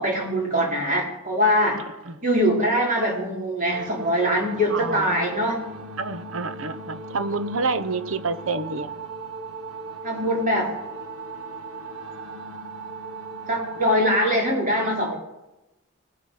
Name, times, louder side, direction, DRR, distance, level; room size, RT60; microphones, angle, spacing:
voice 1, 0.0-1.8 2.2-5.6 10.0-10.7 13.5-15.2, equal, 40° right, 3.7 m, -22 dB
sound 1, 3.7-13.9, right 3 dB, 85° right, 1.3 m, -38 dB
voice 2, 4.7-5.4 6.0-8.9, right 3 dB, 70° right, 0.8 m, -28 dB
19.5 x 7.9 x 4.9 m
head